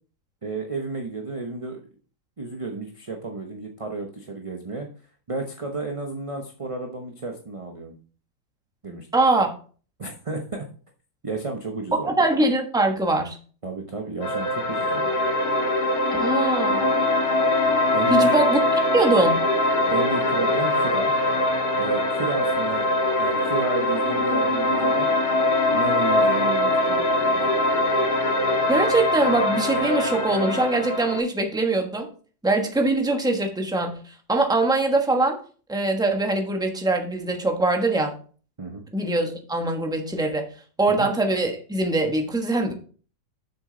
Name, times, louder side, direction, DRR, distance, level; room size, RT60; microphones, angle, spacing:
voice 1, 0.4-1.8 2.4-4.9 5.3-7.9 8.8-9.1 10.0-10.7 11.2-12.1 13.6-15.1 17.9-18.3 19.9-21.1 21.8-22.9 23.2-25.1 25.7-27.7 38.6-38.8 40.9-41.1, right 3 dB, 30° right, 2 dB, 0.7 m, -32 dB
voice 2, 9.1-9.5 12.0-13.4 16.2-16.8 18.1-18.6 18.9-19.5 28.7-32.1 32.4-35.4 35.7-38.1 38.9-40.5 40.8-42.7, right 2 dB, 5° right, 3 dB, 0.9 m, -22 dB
sound 1, 14.2-31.2, left 1 dB, 70° left, 2.0 m, -22 dB
7.4 x 6.3 x 3.9 m, 0.40 s
omnidirectional pair, 1.7 m